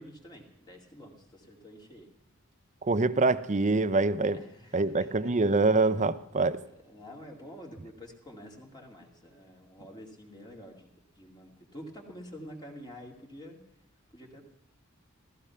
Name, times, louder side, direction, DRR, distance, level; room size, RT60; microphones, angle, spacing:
voice 1, 0.0-2.1 4.3-5.3 6.8-13.6 14.1-14.4, equal, 20° left, 1 dB, 2.4 m, -48 dB
voice 2, 2.8-4.4 4.7-6.6, right 3 dB, 35° right, 14 dB, 0.7 m, -25 dB
15.0 x 15.0 x 5.7 m, 0.77 s
head